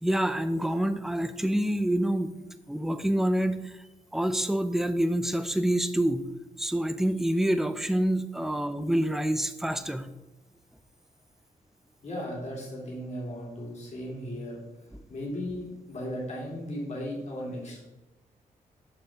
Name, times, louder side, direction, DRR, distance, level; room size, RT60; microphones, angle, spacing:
voice 1, 0.0-2.3 2.7-3.8 4.1-6.3 6.6-10.1, right 1 dB, ahead, 11 dB, 0.5 m, -27 dB
voice 2, 12.0-14.6 15.1-17.8, equal, 50° left, -3 dB, 2.6 m, -36 dB
6.8 x 5.6 x 3.4 m, 1.0 s
cardioid pair, 80°, 15 cm